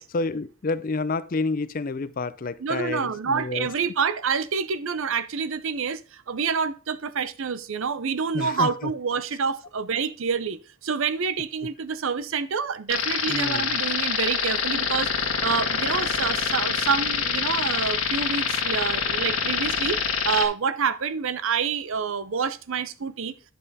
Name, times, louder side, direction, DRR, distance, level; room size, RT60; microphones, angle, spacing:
voice 1, 0.0-3.7 8.3-8.9 13.3-13.8, left 3 dB, 40° left, 0.4 m, -29 dB
voice 2, 2.6-20.0 20.2-23.3, right 5 dB, 65° right, 0.6 m, -27 dB
sound 1, 12.9-20.5, left 6 dB, 75° left, 1.6 m, -25 dB
10.0 x 5.5 x 4.1 m
head